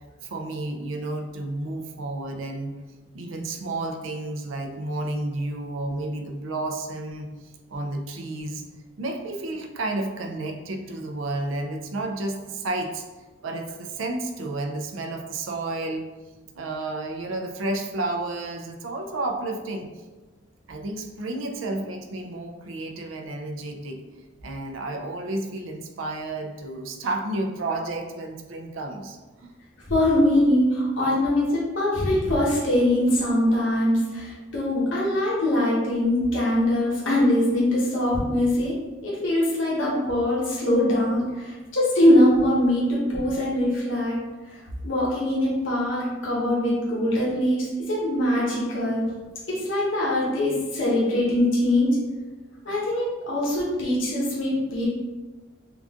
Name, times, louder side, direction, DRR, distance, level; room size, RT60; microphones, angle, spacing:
voice 1, 0.2-2.8 3.1-8.6 9.0-13.1 13.4-16.1 16.5-19.9 20.7-24.0 24.4-29.5, right 2 dB, 85° right, 4 dB, 0.5 m, -31 dB
voice 2, 29.9-38.7 39.0-44.2 44.5-44.6 44.8-49.0 49.5-51.9 52.6-54.9, left 1 dB, 70° left, -6 dB, 1.0 m, -22 dB
3.8 x 2.4 x 3.6 m, 1.2 s
head